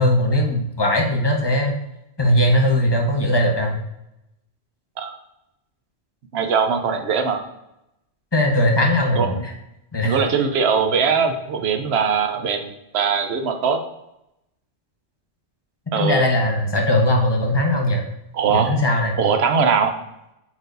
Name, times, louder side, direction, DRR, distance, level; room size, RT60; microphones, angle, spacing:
voice 1, 0.0-1.8 2.2-3.8 8.3-9.5 9.9-10.2 16.0-18.1 18.5-19.1, left 1 dB, 20° left, 1 dB, 1.0 m, -19 dB
voice 2, 6.3-7.4 9.2-9.5 10.0-13.8 15.9-16.2 18.3-18.7 19.2-20.0, right 6 dB, 60° right, 6 dB, 1.0 m, -21 dB
8.1 x 4.7 x 2.6 m, 0.87 s
omnidirectional pair, 1.2 m